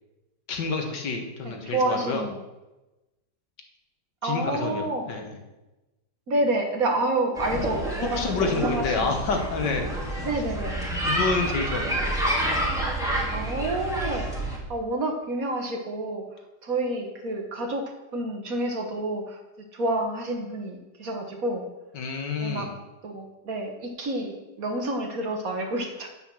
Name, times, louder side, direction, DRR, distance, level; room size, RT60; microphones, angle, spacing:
voice 1, 0.5-2.3 4.2-5.4 8.1-9.9 11.0-12.0 21.9-22.8, left 4 dB, 75° left, 3 dB, 2.0 m, -28 dB
voice 2, 1.4-2.4 4.2-5.1 6.3-9.1 10.2-10.8 13.3-16.2 16.6-17.8 18.1-19.4 19.7-21.6 22.4-22.7 23.0-26.1, right 2 dB, 55° right, 3 dB, 1.8 m, -29 dB
sound 1, 7.3-14.6, right 1 dB, ahead, 2.0 m, -28 dB
9.2 x 7.5 x 6.2 m, 1.0 s
omnidirectional pair, 1.9 m